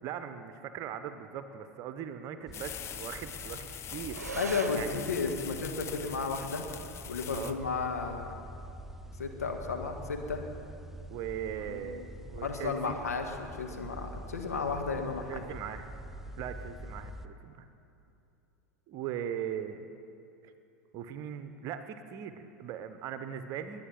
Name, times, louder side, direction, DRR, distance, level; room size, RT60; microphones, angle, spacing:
voice 1, 0.0-4.3 4.7-5.0 7.3-7.6 11.1-13.0 15.3-16.0 16.4-17.6 18.9-19.9 20.9-23.9, right 9 dB, 40° right, 10 dB, 0.9 m, -39 dB
sound 1, 2.5-7.5, left 9 dB, 30° left, 0.8 m, -43 dB
sound 2, 2.5-17.3, right 1 dB, 5° right, 0.6 m, -46 dB
sound 3, 4.1-13.1, right 5 dB, 75° right, 0.7 m, -48 dB
voice 2, 4.3-6.7 7.1-8.3 9.2-10.4 11.7-12.1 12.4-15.5, left 4 dB, 75° left, 4 dB, 1.5 m, -33 dB
21.0 x 8.7 x 5.9 m, 2.7 s
figure-of-eight pair, 80°, 9 cm